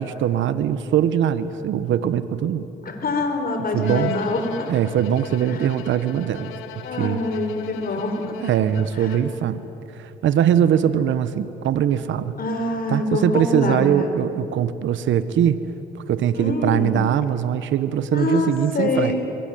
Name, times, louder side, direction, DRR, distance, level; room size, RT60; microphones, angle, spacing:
voice 1, 0.0-2.7 3.7-4.1 4.7-6.5 7.0-7.2 8.4-9.6 9.9-12.3 12.9-15.6 16.1-19.1, right 9 dB, 70° right, 13 dB, 1.2 m, -21 dB
voice 2, 2.8-4.7 5.4-5.7 6.8-8.3 8.9-9.2 12.4-14.2 16.3-17.0 18.1-19.2, left 2 dB, 45° left, 5 dB, 4.9 m, -25 dB
Bowed string instrument, 3.8-9.5, left 7 dB, 80° left, 1.5 m, -37 dB
26.5 x 22.5 x 9.3 m, 3.0 s
supercardioid pair, 65°, 21 cm